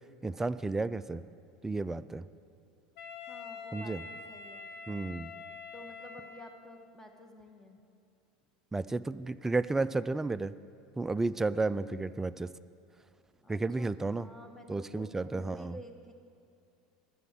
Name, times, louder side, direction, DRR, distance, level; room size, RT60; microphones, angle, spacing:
voice 1, 0.2-1.2 1.6-2.2 3.7-4.0 4.9-5.3 8.7-10.5 11.0-12.5 13.5-14.3 14.7-15.8, right 3 dB, 10° right, 15 dB, 0.4 m, -32 dB
Wind instrument woodwind instrument, 3.0-6.8, left 4 dB, 65° left, 1.5 m, -46 dB
voice 2, 3.3-5.0 5.7-7.8 13.4-16.1, equal, 10° left, 5 dB, 1.5 m, -51 dB
11.0 x 8.6 x 7.6 m, 2.5 s
hypercardioid pair, 85°, 4 cm